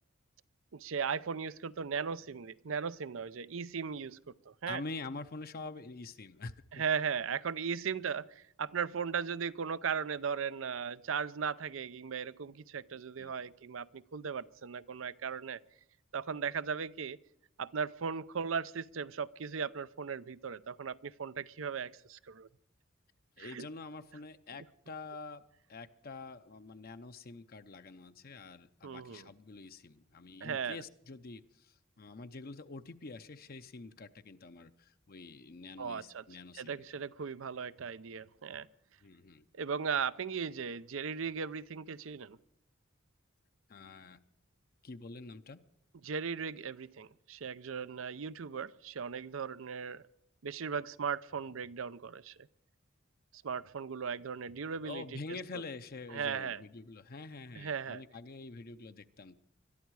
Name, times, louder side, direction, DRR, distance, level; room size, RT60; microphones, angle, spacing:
voice 1, 0.7-4.2 4.5-4.8 6.7-15.6 16.1-17.2 17.6-22.5 23.4-23.7 28.8-29.3 30.4-30.8 35.8-36.2 36.6-38.7 39.5-42.4 46.0-50.0 50.4-52.3 53.3-55.0 56.1-56.6 57.6-58.0, right 6 dB, 75° right, 16 dB, 0.6 m, -37 dB
voice 2, 4.7-6.8 12.9-13.3 23.4-36.9 39.0-39.5 43.7-44.2 44.8-45.6 54.8-59.4, left 3 dB, 50° left, 9 dB, 0.7 m, -46 dB
21.5 x 13.0 x 4.8 m, 0.76 s
head